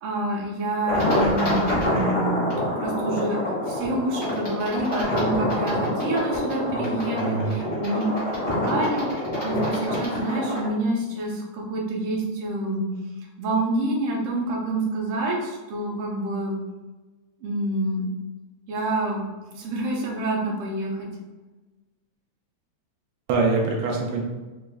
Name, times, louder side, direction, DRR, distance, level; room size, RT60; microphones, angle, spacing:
voice 1, 0.0-2.5 2.8-3.4 3.7-8.0 8.5-12.9 13.4-16.6 17.4-18.1 18.7-19.2 19.5-21.1, right 1 dB, 70° right, -1 dB, 1.4 m, -27 dB
sound 1, 0.9-10.7, left 1 dB, 65° left, 0.4 m, -26 dB
voice 2, 7.1-7.5 23.3-24.2, right 3 dB, 90° right, 0 dB, 1.3 m, -24 dB
4.6 x 2.0 x 3.4 m, 1.2 s
omnidirectional pair, 3.4 m